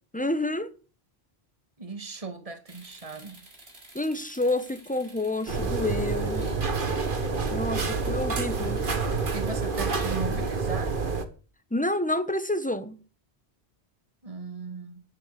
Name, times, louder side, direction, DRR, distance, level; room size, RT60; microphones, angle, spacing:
voice 1, 0.1-0.7 3.9-6.5 7.5-8.8 11.7-13.0, left 1 dB, 10° left, 1.2 m, -29 dB
voice 2, 1.8-3.4 7.7-8.1 9.3-10.9 14.2-15.0, right 4 dB, 35° right, 2.1 m, -37 dB
sound 1, 2.7-10.5, right 1 dB, 75° right, 5.2 m, -53 dB
sound 2, 5.5-11.3, right 4 dB, 55° right, 1.8 m, -28 dB
12.0 x 11.0 x 6.6 m
omnidirectional pair, 1.1 m